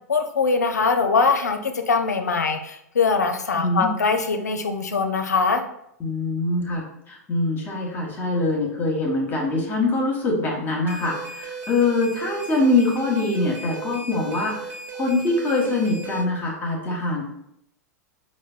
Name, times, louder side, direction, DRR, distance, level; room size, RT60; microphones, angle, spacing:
voice 1, 0.1-5.6, left 4 dB, 80° left, 7 dB, 0.4 m, -22 dB
voice 2, 3.6-3.9 6.0-17.3, left 2 dB, 20° left, -1 dB, 0.9 m, -24 dB
sound 1, 10.9-16.2, right 4 dB, 20° right, 0.7 m, -36 dB
4.9 x 2.1 x 2.4 m, 0.75 s
figure-of-eight pair, 90°, 9 cm